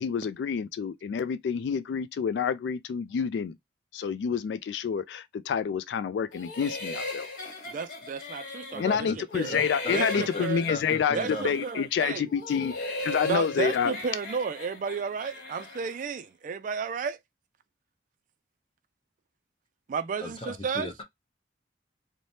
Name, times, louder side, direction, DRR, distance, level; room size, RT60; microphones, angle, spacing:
voice 1, 0.0-3.6 3.9-7.3 8.8-13.9, left 7 dB, 75° left, 0.3 m, -28 dB
sound 1, 6.3-9.0 9.3-11.9 12.3-16.0, left 2 dB, 50° left, 1.4 m, -37 dB
voice 2, 7.7-9.1 9.3-9.5 9.9-10.7 11.1-12.3 13.2-17.2 19.9-20.9, right 5 dB, 45° right, 0.3 m, -32 dB
voice 3, 8.7-9.2 9.5-10.4 10.7-11.5 12.6-12.7 20.2-21.0, left 2 dB, 30° left, 0.9 m, -36 dB
3.2 x 2.1 x 2.7 m
head